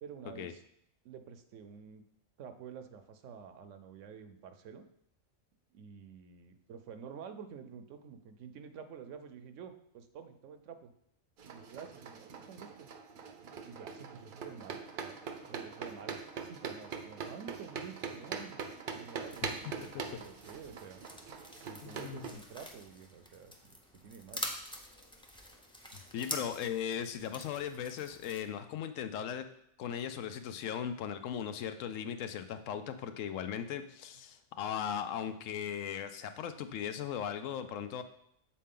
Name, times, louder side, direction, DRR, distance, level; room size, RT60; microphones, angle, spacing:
voice 1, 0.0-0.6 1.0-2.1 2.4-4.9 5.7-10.9 11.5-12.9 13.7-15.2 15.5-18.6 18.9-19.9 20.2-21.0 21.6-24.5, right 7 dB, 80° right, 9 dB, 1.0 m, -49 dB
sound 1, 11.4-22.3, right 6 dB, 55° right, 0.6 m, -43 dB
sound 2, 19.3-28.4, left 1 dB, 5° left, 0.4 m, -46 dB
voice 2, 19.4-20.0 21.8-22.2 26.1-29.5 29.8-38.0, left 8 dB, 90° left, 10 dB, 1.0 m, -38 dB
7.4 x 4.2 x 3.7 m, 0.73 s
omnidirectional pair, 1.3 m